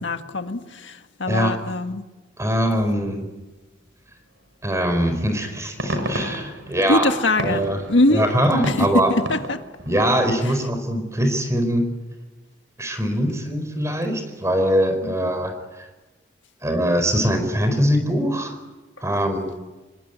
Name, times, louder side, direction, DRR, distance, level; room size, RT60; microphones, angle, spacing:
voice 1, 0.0-2.0 6.9-7.6 7.9-8.2 8.8-8.9 9.3-9.6 15.0-15.1, left 2 dB, 75° left, 7 dB, 1.6 m, -22 dB
voice 2, 2.4-3.3 4.6-7.1 7.4-7.8 8.1-9.1 9.9-11.8 12.8-15.9 16.6-18.6 19.0-19.5, equal, 15° right, 7 dB, 4.6 m, -22 dB
sound 1, 5.4-10.0, equal, 85° right, 5.7 m, -32 dB
26.5 x 22.0 x 9.4 m, 1.2 s
head